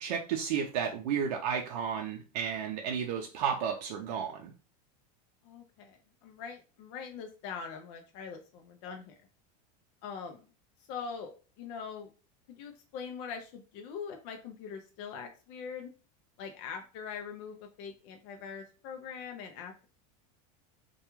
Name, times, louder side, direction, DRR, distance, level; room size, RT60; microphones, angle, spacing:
voice 1, 0.0-4.5, right 7 dB, 85° right, 2 dB, 0.5 m, -32 dB
voice 2, 5.4-9.1 10.0-10.5 10.9-11.3 11.6-12.1 12.5-15.9 16.4-19.9, left 6 dB, 40° left, 4 dB, 0.4 m, -42 dB
2.3 x 2.2 x 2.9 m, 0.36 s
supercardioid pair, 165°, 20 cm